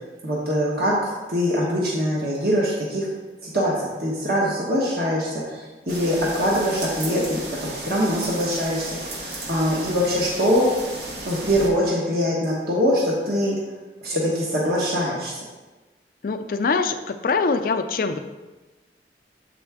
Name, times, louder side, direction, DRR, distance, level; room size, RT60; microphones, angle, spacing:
voice 1, 0.2-3.1 3.4-10.7 11.2-13.5 14.0-15.4, equal, 60° right, -4 dB, 1.1 m, -23 dB
sound 1, 5.9-11.7, right 2 dB, 80° right, 1.1 m, -34 dB
voice 2, 16.2-18.2, left 4 dB, 50° left, 8 dB, 0.4 m, -23 dB
7.4 x 4.3 x 3.5 m, 1.2 s
head